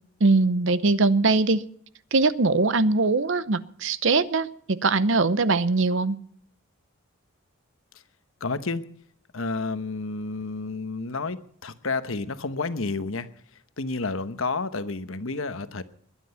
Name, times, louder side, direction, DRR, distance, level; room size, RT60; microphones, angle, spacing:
voice 1, 0.2-1.6 2.1-6.2, right 3 dB, 60° right, 16 dB, 0.8 m, -21 dB
voice 2, 8.4-8.8 9.3-13.3 13.8-15.8, left 3 dB, 70° left, 12 dB, 1.1 m, -30 dB
21.5 x 10.5 x 5.6 m, 0.62 s
head